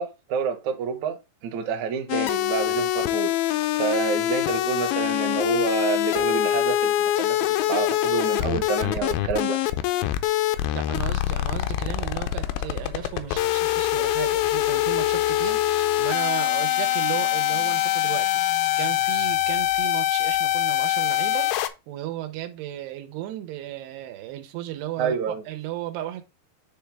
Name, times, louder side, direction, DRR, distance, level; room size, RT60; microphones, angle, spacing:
voice 1, 0.0-3.3 3.8-9.6 25.0-25.4, right 7 dB, 65° right, 1.9 m, -28 dB
sound 1, 2.1-21.7, left 14 dB, 80° left, 2.2 m, -24 dB
voice 2, 10.7-21.5 21.9-26.2, right 13 dB, 90° right, 2.9 m, -35 dB
9.5 x 3.4 x 3.4 m
omnidirectional pair, 4.5 m